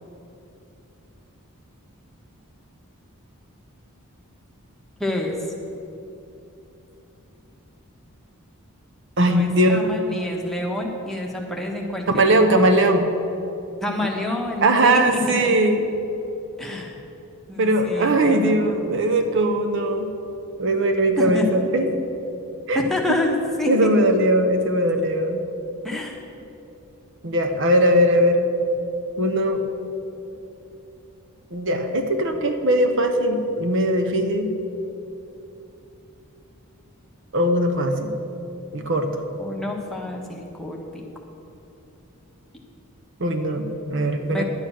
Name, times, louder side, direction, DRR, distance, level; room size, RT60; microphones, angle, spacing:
voice 1, 5.0-5.5 9.2-12.8 13.8-15.2 15.6-15.7 16.6-17.0 17.5-18.9 21.2-22.0 22.7-23.9 25.8-26.2 39.4-41.1 44.3-44.4, left 1 dB, ahead, -1 dB, 1.3 m, -28 dB
voice 2, 9.2-10.0 12.1-13.1 14.6-15.8 17.6-20.1 20.6-21.9 22.7-22.8 23.7-25.4 27.2-28.4 29.2-29.6 31.5-34.5 37.3-38.2 38.7-39.1 43.2-44.4, right 1 dB, 55° right, 5 dB, 0.9 m, -20 dB
11.0 x 8.8 x 6.3 m, 2.9 s
head